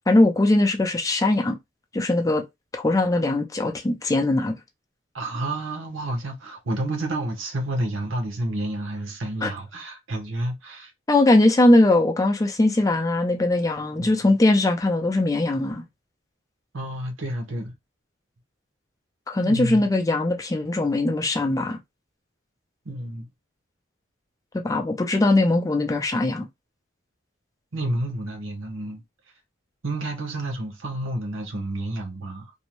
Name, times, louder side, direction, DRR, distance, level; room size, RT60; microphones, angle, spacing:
voice 1, 0.1-1.6 1.9-2.4 2.7-4.5 9.4-9.5 11.1-15.8 19.3-21.8 24.5-26.5, left 2 dB, 15° left, 0.4 m, -20 dB
voice 2, 5.1-10.9 14.0-14.2 16.7-17.7 19.4-19.8 22.8-23.3 27.7-29.0 29.8-32.5, right 1 dB, 90° right, 0.8 m, -30 dB
2.6 x 2.1 x 2.9 m
head